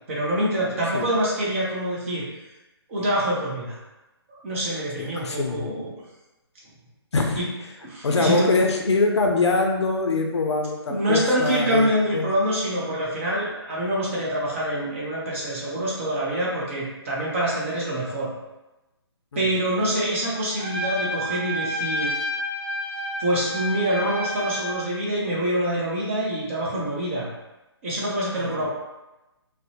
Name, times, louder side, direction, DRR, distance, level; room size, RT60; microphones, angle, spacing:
voice 1, 0.1-2.2 2.9-3.8 4.4-5.9 7.4-7.5 7.8-8.5 10.9-18.3 19.4-22.1 23.2-27.3 27.8-28.7, right 1 dB, 30° right, -6 dB, 0.5 m, -25 dB
voice 2, 5.0-5.7 7.1-7.4 8.0-12.3 19.3-19.5 28.4-28.7, left 3 dB, 85° left, 2 dB, 0.4 m, -24 dB
Trumpet, 20.6-24.8, equal, 10° right, 1.2 m, -29 dB
2.5 x 2.0 x 2.7 m, 1.0 s
figure-of-eight pair, 145°, 14 cm